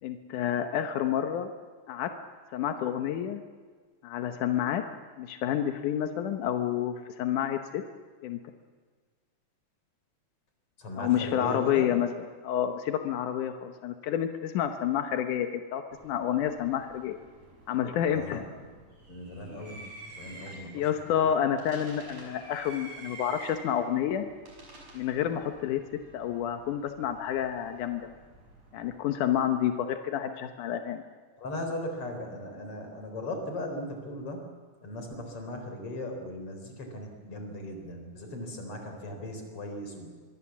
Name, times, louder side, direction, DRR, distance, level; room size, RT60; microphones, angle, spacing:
voice 1, 0.0-1.5 1.9-2.1 2.5-3.4 4.0-4.8 5.2-7.8 8.2-8.4 11.0-17.2 17.7-18.4 20.7-24.3 24.9-25.8 26.1-28.0 28.7-31.0, left 10 dB, 90° left, 6 dB, 2.6 m, -29 dB
voice 2, 10.8-11.9 18.1-18.6 19.1-20.9 31.4-34.4 34.8-40.1, left 1 dB, 45° left, 4 dB, 5.0 m, -38 dB
sound 1, 15.9-29.0, right 2 dB, 65° right, 7.1 m, -50 dB
25.5 x 22.5 x 7.3 m, 1.5 s
omnidirectional pair, 3.5 m